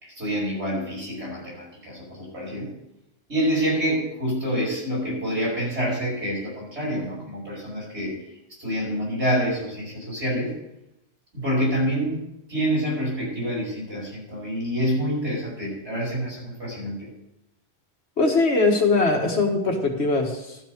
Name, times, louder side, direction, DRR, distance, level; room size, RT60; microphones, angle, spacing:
voice 1, 0.0-2.7 3.3-8.2 8.6-10.6 11.3-12.2 12.5-17.1, equal, 85° right, -4 dB, 5.7 m, -27 dB
voice 2, 18.2-20.6, left 3 dB, 75° left, 2 dB, 2.0 m, -21 dB
12.5 x 5.9 x 6.7 m, 0.85 s
omnidirectional pair, 1.1 m